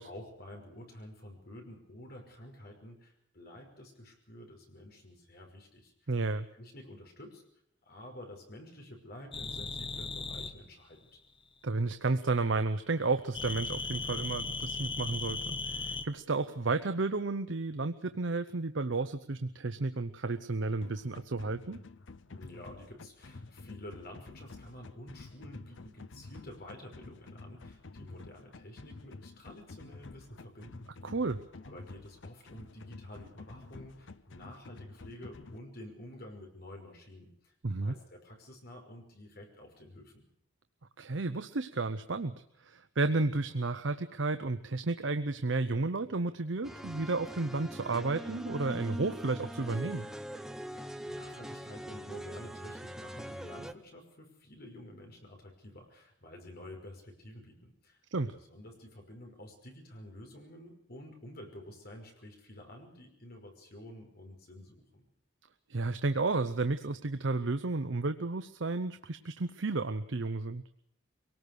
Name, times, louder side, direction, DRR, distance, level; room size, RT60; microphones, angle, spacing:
voice 1, 0.0-6.1 6.5-7.4 7.9-11.2 22.3-30.9 31.6-40.2 50.7-65.1, left 1 dB, 55° left, 2 dB, 5.6 m, -50 dB
voice 2, 6.1-6.5 11.6-21.8 31.0-31.4 37.6-37.9 41.0-42.3 42.6-50.1 58.1-58.3 65.7-70.8, right 3 dB, 75° right, 10 dB, 0.8 m, -32 dB
sound 1, 9.3-10.5 13.3-16.0, left 3 dB, 30° left, 1.1 m, -37 dB
sound 2, 20.8-35.6, left 3 dB, 75° left, 0.9 m, -50 dB
sound 3, 46.6-53.7, right 1 dB, 5° right, 0.9 m, -42 dB
23.5 x 18.5 x 6.7 m, 0.70 s
head